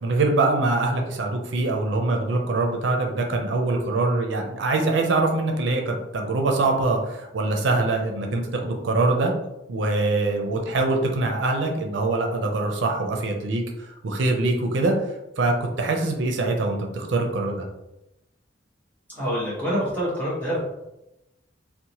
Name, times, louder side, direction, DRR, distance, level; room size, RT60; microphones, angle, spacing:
voice 1, 0.0-9.3 9.7-14.9 15.4-17.6, right 2 dB, 80° right, 2 dB, 0.4 m, -23 dB
voice 2, 19.1-20.6, equal, 10° left, -8 dB, 1.0 m, -26 dB
2.8 x 2.1 x 2.8 m, 0.90 s
head